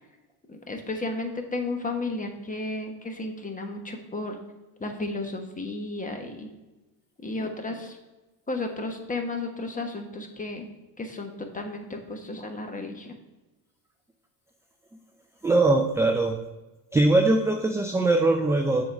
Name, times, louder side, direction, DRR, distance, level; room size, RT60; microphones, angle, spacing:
voice 1, 0.5-4.4 4.8-6.5 7.2-8.0 8.5-10.7 11.0-13.2, left 2 dB, 15° left, 4 dB, 1.2 m, -33 dB
voice 2, 15.4-16.4 16.9-18.9, right 2 dB, 5° right, 4 dB, 0.3 m, -21 dB
6.8 x 4.0 x 5.2 m, 1.1 s
supercardioid pair, 80°, 48 cm